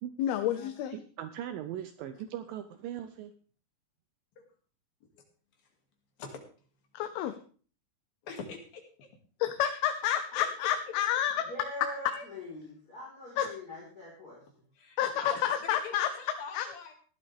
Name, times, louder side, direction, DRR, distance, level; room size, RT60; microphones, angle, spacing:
voice 1, 0.2-1.0 6.9-7.3 9.4-11.4 13.4-13.5 15.0-16.1 16.5-16.7, left 10 dB, 90° left, 8 dB, 2.8 m, -29 dB
voice 2, 0.9-3.3, right 11 dB, 75° right, 9 dB, 2.3 m, -39 dB
voice 3, 8.2-9.1 9.7-9.8 10.4-10.7 11.4-12.2 14.8-16.9, left 4 dB, 70° left, 2 dB, 4.2 m, -44 dB
voice 4, 11.5-14.4, left 2 dB, 25° left, -6 dB, 4.8 m, -43 dB
16.5 x 11.5 x 3.5 m, 0.42 s
omnidirectional pair, 4.3 m